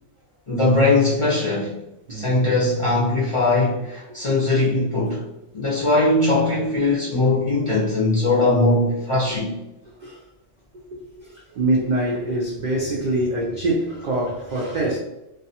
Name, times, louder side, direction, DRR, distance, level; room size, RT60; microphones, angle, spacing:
voice 1, 0.5-1.8 2.1-5.2 5.5-9.5, left 2 dB, 40° left, -6 dB, 0.4 m, -20 dB
voice 2, 2.1-2.4 10.0-10.2 10.9-15.0, right 1 dB, 70° right, -3 dB, 0.4 m, -24 dB
2.4 x 2.3 x 2.7 m, 0.93 s
omnidirectional pair, 1.3 m